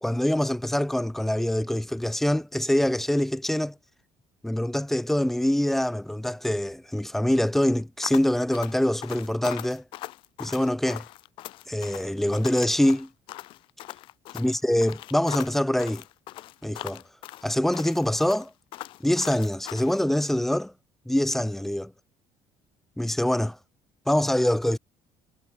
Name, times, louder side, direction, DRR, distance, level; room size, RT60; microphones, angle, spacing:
voice 1, 0.0-3.7 4.4-9.8 10.4-11.0 11.7-13.1 14.3-16.0 16.6-17.0 17.4-18.5 19.0-20.7 21.1-21.9 23.0-23.6 24.1-24.8, left 1 dB, 5° left, 0.8 m, -24 dB
sound 1, 8.0-20.0, left 17 dB, 65° left, 3.2 m, -40 dB
cardioid pair, 150°, 9 cm